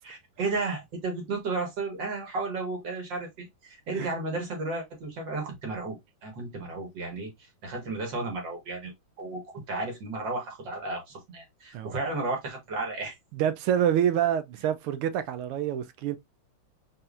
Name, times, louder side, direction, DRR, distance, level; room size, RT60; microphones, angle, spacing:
voice 1, 0.0-6.0 6.2-13.2, right 3 dB, 60° right, 2.2 m, -33 dB
voice 2, 13.3-16.2, right 10 dB, 85° right, 1.5 m, -27 dB
4.2 x 3.9 x 2.4 m
omnidirectional pair, 2.3 m